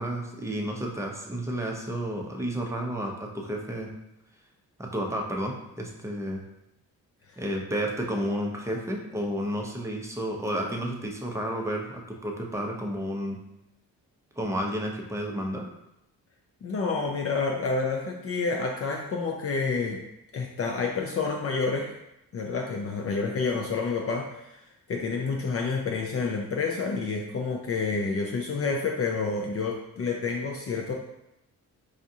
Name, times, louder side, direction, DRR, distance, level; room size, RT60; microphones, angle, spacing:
voice 1, 0.0-3.9 4.8-6.4 7.4-13.4 14.4-15.7, equal, 10° right, 0 dB, 0.6 m, -31 dB
voice 2, 16.6-20.0 20.3-21.9 22.3-24.6 24.9-30.9, left 4 dB, 40° left, 0 dB, 0.5 m, -29 dB
4.8 x 2.3 x 2.7 m, 0.86 s
cardioid pair, 90°, 35 cm